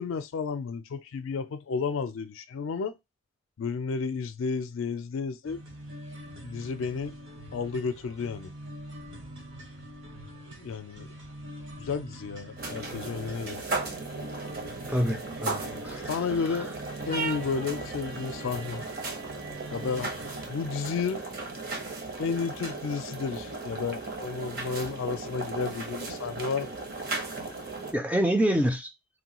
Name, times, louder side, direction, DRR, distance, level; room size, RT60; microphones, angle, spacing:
voice 1, 0.0-2.9 3.6-5.6 6.4-7.1 7.5-8.5 10.6-11.1 11.8-13.6 16.1-16.7 17.1-18.8 19.7-20.1 20.5-21.2 22.2-26.8, left 5 dB, 75° left, 0.4 m, -32 dB
sound 1, 5.4-20.5, equal, 65° right, 1.0 m, -44 dB
sound 2, 12.6-27.9, right 3 dB, 45° right, 0.8 m, -36 dB
voice 2, 14.9-16.6 27.9-28.9, right 1 dB, 5° right, 0.3 m, -27 dB
3.1 x 2.2 x 2.9 m
head